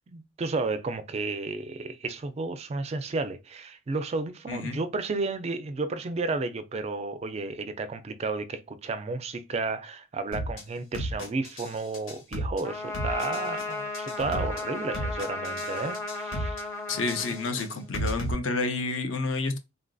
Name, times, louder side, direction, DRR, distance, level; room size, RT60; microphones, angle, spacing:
voice 1, 0.1-16.6, right 3 dB, 30° right, 0.3 m, -32 dB
voice 2, 4.5-4.8 16.9-19.6, left 3 dB, 65° left, 0.6 m, -29 dB
sound 1, 10.3-10.6 10.9-11.7 11.9-12.6 12.9-13.6 13.9-14.6 14.9-15.7 15.9-16.6 16.9-18.3, right 1 dB, 90° left, 1.3 m, -33 dB
Trumpet, 12.6-17.9, left 3 dB, 15° left, 0.7 m, -35 dB
3.6 x 2.5 x 2.3 m
head